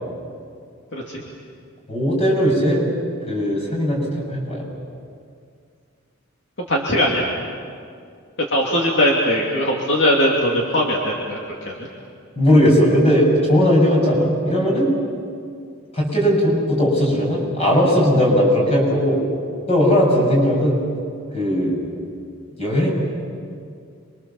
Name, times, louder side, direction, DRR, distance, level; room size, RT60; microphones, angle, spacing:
voice 1, 0.9-1.2 6.7-7.3 8.5-11.4 11.6-11.8, equal, 60° left, -3 dB, 2.8 m, -20 dB
voice 2, 1.9-2.8 3.3-4.6 12.4-14.9 15.9-19.2 19.7-20.8 21.3-21.7 22.6-22.9, equal, 30° left, -2 dB, 7.2 m, -18 dB
28.0 x 24.0 x 7.2 m, 2.3 s
head